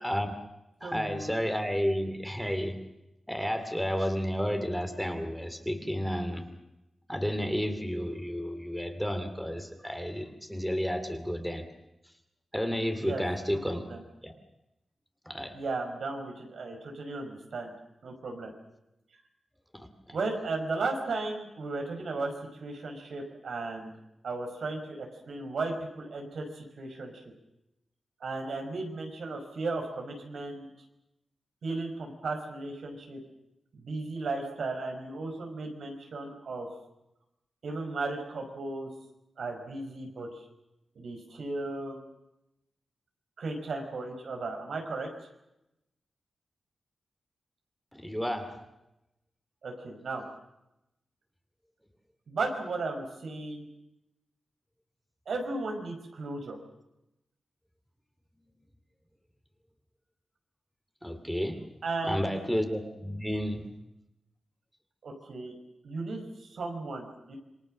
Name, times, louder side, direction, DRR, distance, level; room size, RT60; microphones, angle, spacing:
voice 1, 0.0-0.4 0.8-2.8 3.3-6.5 7.1-11.7 12.5-13.8 14.2-14.3 15.3-15.6 19.7-20.2 47.9-48.6 61.0-61.6 62.0-63.7, equal, ahead, 7 dB, 2.6 m, -31 dB
voice 2, 0.8-1.3 13.0-13.2 13.5-14.0 15.5-17.7 18.0-18.5 20.1-22.3 22.6-23.9 24.2-27.1 28.2-30.7 31.6-33.2 33.7-36.7 37.6-38.9 39.4-40.3 41.0-42.0 43.4-45.1 49.6-50.2 52.3-53.7 55.3-56.6 61.8-62.4 65.0-65.5 65.8-67.4, right 3 dB, 75° right, 3 dB, 5.4 m, -35 dB
27.5 x 23.5 x 6.5 m, 0.89 s
wide cardioid pair, 125°, 0 cm